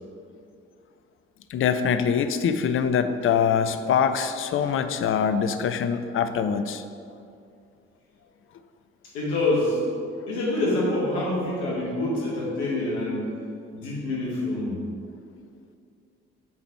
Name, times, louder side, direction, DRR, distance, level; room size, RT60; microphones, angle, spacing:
voice 1, 1.5-6.8, left 7 dB, 45° left, 10 dB, 0.5 m, -24 dB
voice 2, 9.1-9.8 10.3-13.3 13.7-14.8, left 2 dB, 85° left, -5 dB, 1.4 m, -26 dB
6.0 x 4.1 x 4.5 m, 2.4 s
hypercardioid pair, 45°, 31 cm